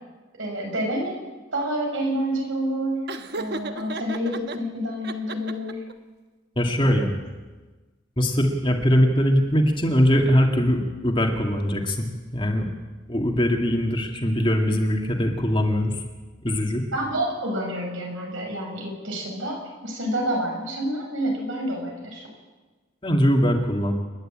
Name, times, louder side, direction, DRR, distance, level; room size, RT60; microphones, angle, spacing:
voice 1, 0.4-1.1 1.5-3.1 3.4-5.8 16.9-22.3, right 1 dB, 70° right, 1 dB, 6.5 m, -28 dB
Laughter, 3.1-4.6 5.0-5.9, right 2 dB, 50° right, 1.2 m, -33 dB
voice 2, 6.6-7.1 8.2-12.7 13.1-16.0 16.4-16.8 23.0-23.9, equal, 25° left, 2 dB, 2.2 m, -21 dB
29.0 x 11.5 x 8.9 m, 1.3 s
head